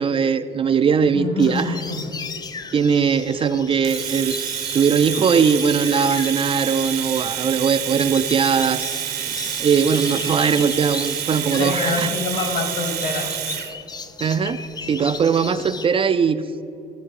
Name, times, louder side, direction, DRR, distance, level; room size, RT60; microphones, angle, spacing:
voice 1, 0.0-1.8 2.7-4.4 4.7-8.9 9.2-9.3 9.6-12.1 14.2-16.4, right 6 dB, 30° right, 10 dB, 0.4 m, -20 dB
voice 2, 1.1-2.2 5.3-5.5 11.6-13.3, left 3 dB, 60° left, 4 dB, 2.5 m, -26 dB
sound 1, 1.4-15.9, left 4 dB, 25° left, 0.5 m, -36 dB
Domestic sounds home sounds, 3.8-13.7, right 11 dB, 70° right, 1.0 m, -28 dB
15.5 x 6.6 x 5.4 m, 2.7 s
cardioid pair, 110°, 17 cm